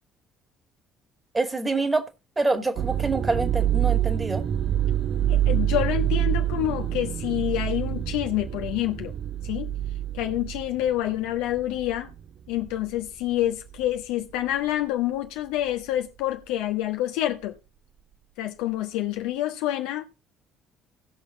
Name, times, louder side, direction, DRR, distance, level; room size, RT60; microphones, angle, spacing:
voice 1, 1.3-2.0 2.4-4.5, right 3 dB, 20° right, 2.3 m, -26 dB
sound 1, 2.8-12.2 12.6-13.0 13.7-14.0, right 11 dB, 45° right, 0.8 m, -26 dB
voice 2, 5.3-9.1 9.4-9.7 10.1-12.1 12.5-17.6 18.4-20.0, left 13 dB, 65° left, 1.3 m, -27 dB
17.5 x 6.3 x 3.9 m
figure-of-eight pair, 50°, 0 cm